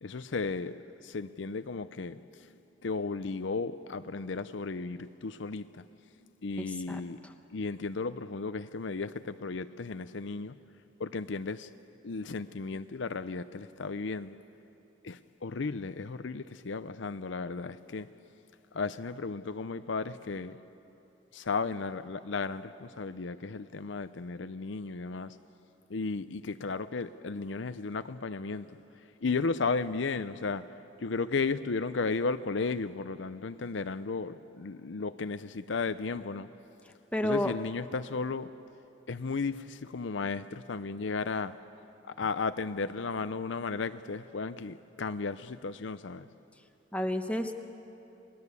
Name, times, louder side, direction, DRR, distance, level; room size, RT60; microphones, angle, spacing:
voice 1, 0.0-2.2 2.8-5.8 6.4-7.2 7.5-10.5 11.0-11.7 12.0-14.4 15.0-18.1 18.7-20.6 21.3-25.3 25.9-28.8 29.2-30.7 31.0-36.5 37.2-38.5 39.1-41.5 42.2-46.3, left 4 dB, 70° left, 12 dB, 0.6 m, -34 dB
voice 2, 6.6-7.3 37.1-37.5 46.9-47.5, left 1 dB, 5° left, 5 dB, 1.1 m, -31 dB
28.5 x 19.5 x 8.3 m, 2.9 s
head